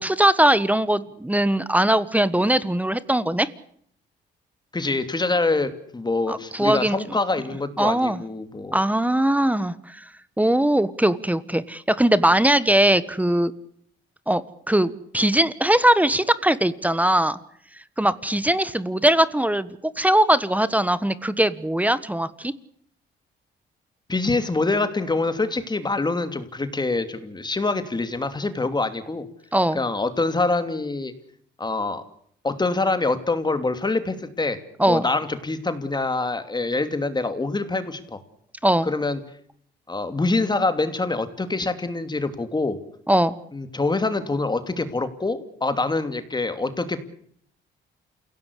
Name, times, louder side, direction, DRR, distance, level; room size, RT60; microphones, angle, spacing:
voice 1, 0.0-3.5 6.3-7.2 7.8-8.2 8.7-10.0 10.4-13.5 14.3-17.4 18.0-19.7 20.0-22.5 29.5-29.8 34.8-35.0 38.6-38.9 43.1-43.4, right 1 dB, 5° right, 16 dB, 1.3 m, -20 dB
voice 2, 4.7-8.8 24.1-29.3 29.7-31.1 31.6-32.0 32.4-34.6 34.9-38.2 38.8-39.2 39.9-42.8 43.5-47.0, left 3 dB, 20° left, 10 dB, 2.8 m, -25 dB
28.5 x 17.0 x 8.3 m, 0.65 s
cardioid pair, 90°, 20 cm